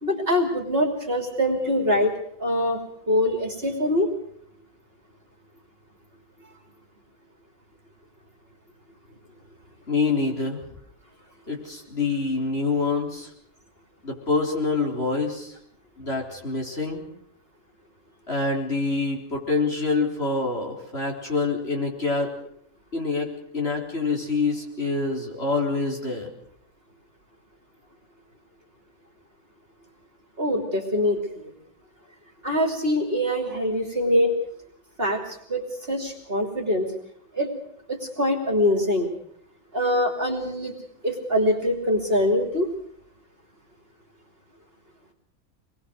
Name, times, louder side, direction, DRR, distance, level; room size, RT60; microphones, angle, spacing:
voice 1, 0.0-2.1 2.4-4.1 30.4-31.5 32.4-34.4 35.0-36.9 37.3-37.5 37.9-39.1 39.7-40.7 41.0-42.7, left 1 dB, 30° right, 4 dB, 3.2 m, -24 dB
voice 2, 9.9-10.6 11.5-13.3 14.0-15.5 16.0-17.1 18.3-22.3 22.9-23.3 23.5-26.3, left 3 dB, 35° left, 0 dB, 4.3 m, -26 dB
25.5 x 20.5 x 6.5 m, 0.68 s
omnidirectional pair, 1.9 m